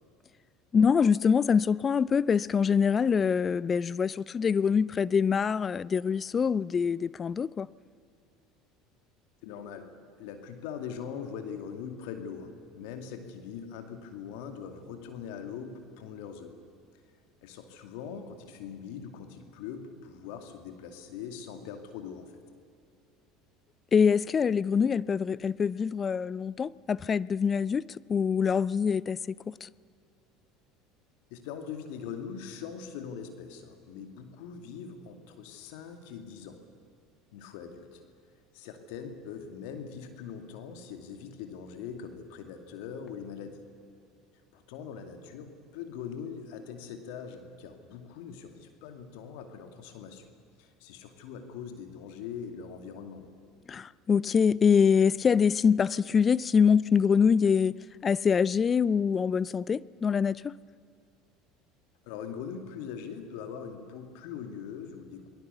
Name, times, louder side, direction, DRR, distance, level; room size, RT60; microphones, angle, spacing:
voice 1, 0.7-7.7 23.9-29.2 29.5-29.7 53.7-57.7 58.0-60.5, left 6 dB, 30° left, 0.5 m, -24 dB
voice 2, 9.4-9.9 10.2-16.5 17.4-22.4 31.3-36.6 37.3-38.0 38.5-43.6 44.5-50.3 50.6-53.3 62.0-65.3, left 7 dB, 70° left, 2.4 m, -42 dB
27.5 x 20.0 x 7.0 m
hypercardioid pair, 75°, 0 cm